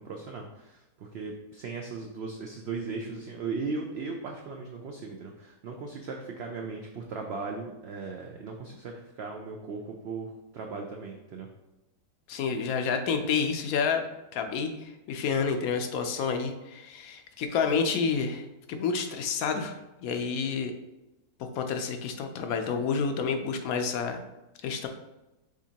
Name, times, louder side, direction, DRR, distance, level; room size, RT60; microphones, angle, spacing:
voice 1, 0.0-11.5, right 4 dB, 85° right, 2 dB, 0.5 m, -37 dB
voice 2, 12.3-14.0 14.3-20.7 21.4-24.2 24.6-24.9, left 5 dB, 75° left, 5 dB, 1.0 m, -29 dB
5.0 x 3.6 x 2.8 m, 0.98 s
omnidirectional pair, 1.6 m